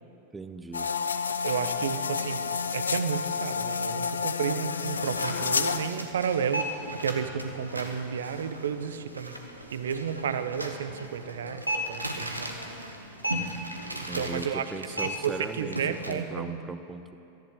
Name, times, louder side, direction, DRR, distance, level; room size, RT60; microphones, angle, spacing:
voice 1, 0.3-0.9 14.0-17.2, right 3 dB, 10° right, 10 dB, 0.7 m, -38 dB
sound 1, 0.7-5.9, left 5 dB, 70° left, 0.5 m, -30 dB
voice 2, 1.4-2.4 2.7-9.3 9.7-12.5 13.9-14.6 15.0-16.6, right 7 dB, 65° right, 11 dB, 0.7 m, -32 dB
sound 2, 4.8-16.1, right 1 dB, 85° right, 1.1 m, -36 dB
18.0 x 14.0 x 3.7 m, 2.9 s
figure-of-eight pair, 90°, 0 cm